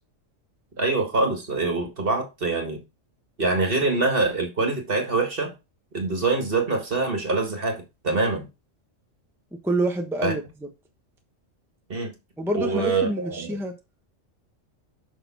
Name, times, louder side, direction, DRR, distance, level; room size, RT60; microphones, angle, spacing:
voice 1, 0.8-2.8 3.4-5.5 5.9-8.5 10.2-10.3 11.9-12.2 12.5-13.6, right 3 dB, 45° right, 1.9 m, -24 dB
voice 2, 9.6-10.4 12.4-13.7, right 1 dB, ahead, 1.1 m, -26 dB
6.9 x 6.0 x 4.1 m
omnidirectional pair, 1.3 m